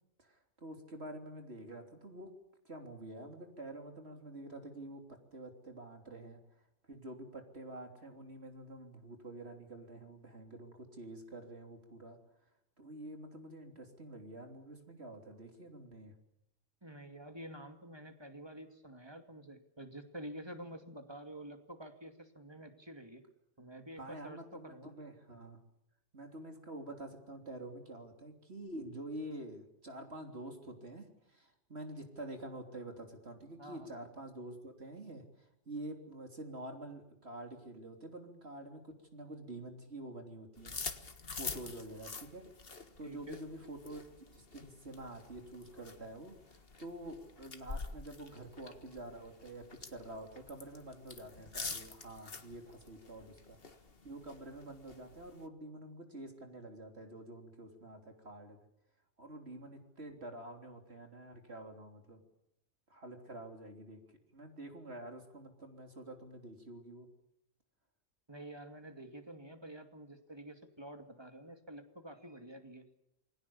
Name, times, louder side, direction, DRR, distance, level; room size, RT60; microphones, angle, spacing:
voice 1, 0.2-2.3 2.7-6.4 6.9-12.2 12.8-16.2 24.0-25.6 26.1-40.8 41.3-42.4 43.0-44.0 44.3-53.6 54.0-58.6 59.2-62.2 62.9-64.0 64.3-67.1, right 1 dB, 55° right, 4 dB, 3.6 m, -48 dB
voice 2, 16.8-23.2 23.6-24.9 33.6-33.9 43.0-43.4 68.3-72.9, right 1 dB, 20° right, 6 dB, 2.5 m, -49 dB
sound 1, 40.6-55.5, left 4 dB, 50° left, 1.8 m, -47 dB
28.0 x 21.5 x 7.1 m, 0.80 s
omnidirectional pair, 1.3 m